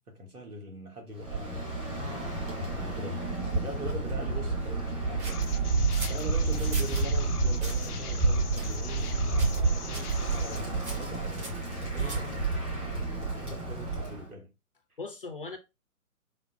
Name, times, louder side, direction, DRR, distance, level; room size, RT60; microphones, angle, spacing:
voice 1, 0.0-1.7 2.8-3.2 3.5-5.5 6.1-11.5 11.8-12.5 12.7-13.0 13.4-14.5, right 2 dB, 80° right, 1.4 m, -42 dB
Bird, 1.2-14.3, right 3 dB, 25° right, 1.0 m, -30 dB
voice 2, 2.0-2.6 12.0-12.4 15.0-15.6, left 3 dB, 40° left, 0.5 m, -41 dB
sound 1, 5.2-7.1 7.6-7.9 8.5-9.1 9.4-9.7 9.9-10.2 10.8-12.4, right 1 dB, 50° right, 1.4 m, -43 dB
sound 2, 5.3-10.6, left 6 dB, 80° left, 0.6 m, -43 dB
4.9 x 2.0 x 2.4 m
figure-of-eight pair, 135°, 45 cm